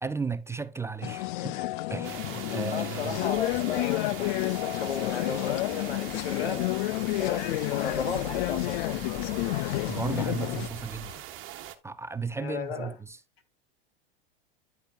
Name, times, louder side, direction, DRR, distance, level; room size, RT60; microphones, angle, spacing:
voice 1, 0.0-1.6 1.9-3.2 9.9-11.2 11.8-13.2, right 5 dB, 10° right, 0.6 m, -34 dB
sound 1, 1.0-10.7, left 20 dB, 55° left, 0.4 m, -30 dB
sound 2, 2.0-11.7, right 12 dB, 45° right, 1.5 m, -42 dB
voice 2, 2.6-6.7 7.2-9.1 12.4-12.9, left 6 dB, 90° left, 2.1 m, -35 dB
sound 3, 3.0-11.2, left 4 dB, 35° left, 6.5 m, -47 dB
10.5 x 7.9 x 2.4 m
hypercardioid pair, 105°, 30 cm